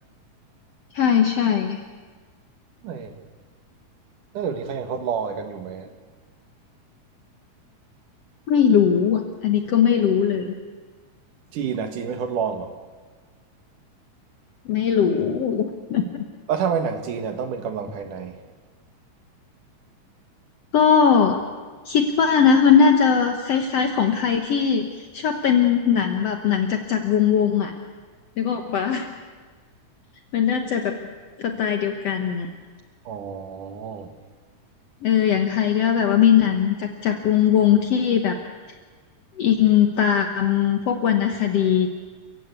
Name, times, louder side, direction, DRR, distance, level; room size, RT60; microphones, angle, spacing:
voice 1, 0.9-1.8 8.5-10.5 14.7-16.0 20.7-21.5 21.9-27.7 28.4-29.1 30.3-31.0 31.4-32.5 35.0-38.4 39.4-41.9, left 7 dB, 60° left, 2.0 m, -20 dB
voice 2, 2.8-3.2 4.3-5.9 11.5-12.7 16.5-18.4 33.0-34.1, right 7 dB, 85° right, 3.1 m, -28 dB
30.0 x 15.5 x 8.3 m
omnidirectional pair, 3.5 m